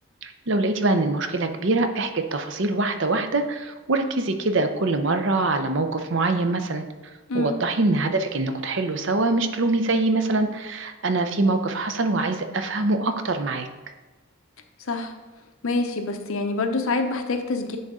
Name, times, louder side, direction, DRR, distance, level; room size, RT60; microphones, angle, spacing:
voice 1, 0.2-6.8 7.3-13.7, right 2 dB, 55° right, 8 dB, 0.6 m, -24 dB
voice 2, 14.8-15.1 15.6-17.8, left 3 dB, 70° left, 6 dB, 0.7 m, -26 dB
10.5 x 4.0 x 3.7 m, 1.2 s
head